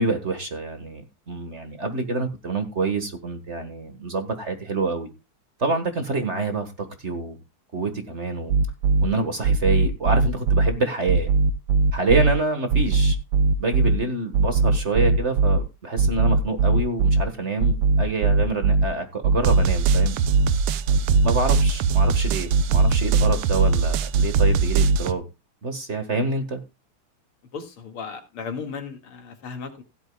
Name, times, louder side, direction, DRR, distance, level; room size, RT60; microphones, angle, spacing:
voice 1, 0.0-5.1 5.6-7.4 7.7-8.5 9.0-11.3 11.9-13.2 13.6-20.1 21.2-25.2 25.6-26.6, right 3 dB, 35° right, 1.7 m, -27 dB
sound 1, 8.5-9.1 9.4-10.7 11.1-12.3 12.7-14.0 14.3-15.6 16.0-17.2 17.6-18.9 19.2-25.1, right 3 dB, 85° right, 1.7 m, -19 dB
voice 2, 27.5-29.8, left 5 dB, 80° left, 2.9 m, -35 dB
16.5 x 12.0 x 2.3 m
omnidirectional pair, 2.4 m